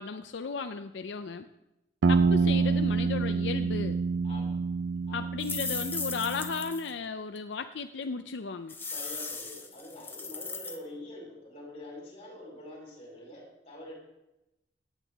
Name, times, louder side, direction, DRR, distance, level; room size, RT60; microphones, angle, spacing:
voice 1, 0.0-1.5 2.1-4.0 5.1-8.7, left 5 dB, 80° left, 8 dB, 0.5 m, -35 dB
sound 1, 2.0-6.7, right 4 dB, 90° right, 0.4 m, -27 dB
voice 2, 4.2-4.6 5.1-5.3 8.8-13.9, left 1 dB, 35° left, -2 dB, 4.5 m, -45 dB
sound 2, 5.4-6.9 7.4-7.5 8.7-10.8, left 4 dB, 10° left, 1.0 m, -37 dB
16.5 x 8.9 x 3.5 m, 0.92 s
head